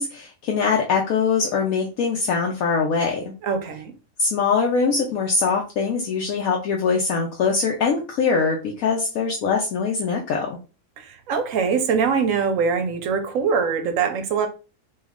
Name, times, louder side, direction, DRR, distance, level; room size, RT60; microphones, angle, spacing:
voice 1, 0.0-3.2 4.2-10.6, left 5 dB, 70° left, 1.0 m, -22 dB
voice 2, 3.4-3.9 11.0-14.5, right 6 dB, 70° right, 0.9 m, -23 dB
3.1 x 2.3 x 3.5 m
omnidirectional pair, 1.6 m